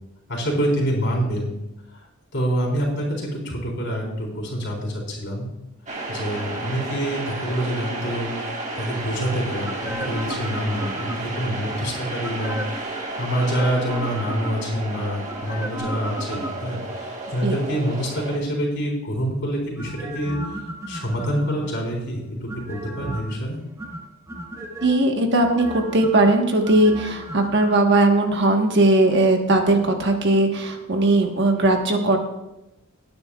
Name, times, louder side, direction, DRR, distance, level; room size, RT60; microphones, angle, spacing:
voice 1, 0.3-1.6 2.3-5.5 6.1-23.6, equal, 55° left, -2 dB, 3.9 m, -26 dB
sound 1, 5.9-18.4, right 2 dB, 35° right, 1.5 m, -32 dB
sound 2, 9.6-11.5 12.2-12.9 13.4-14.8 15.3-17.0 19.8-21.9 22.5-23.4 23.8-24.9 25.4-27.7 28.0-28.1, right 1 dB, 15° right, 1.0 m, -35 dB
voice 2, 24.8-32.2, right 2 dB, 55° right, 3 dB, 1.3 m, -19 dB
18.5 x 9.5 x 2.4 m, 0.93 s
head